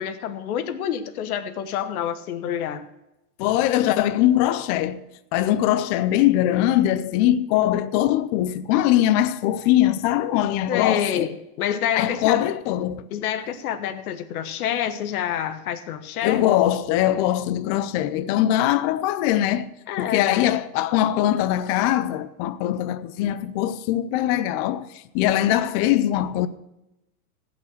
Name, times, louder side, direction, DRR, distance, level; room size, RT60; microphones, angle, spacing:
voice 1, 0.0-2.9 10.7-12.5 13.1-16.4 19.9-20.4, left 9 dB, 70° left, 1.4 m, -27 dB
voice 2, 3.4-5.0 5.3-11.3 12.0-13.1 16.2-19.7 20.0-24.9 25.1-26.5, left 13 dB, 25° left, 0.4 m, -21 dB
15.5 x 5.8 x 6.3 m
supercardioid pair, 135°, 46 cm